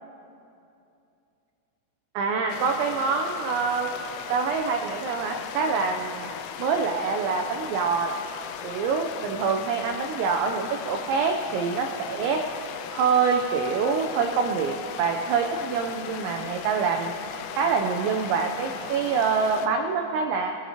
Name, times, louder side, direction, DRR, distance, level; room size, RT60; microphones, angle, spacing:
voice 1, 2.1-3.9 4.3-6.3 6.6-8.1 8.6-12.6 12.9-17.1 17.6-20.5, right 5 dB, 85° right, 3 dB, 2.6 m, -25 dB
sound 1, 2.5-19.7, left 8 dB, 85° left, 3.3 m, -38 dB
22.0 x 14.0 x 2.9 m, 2.7 s
omnidirectional pair, 6.0 m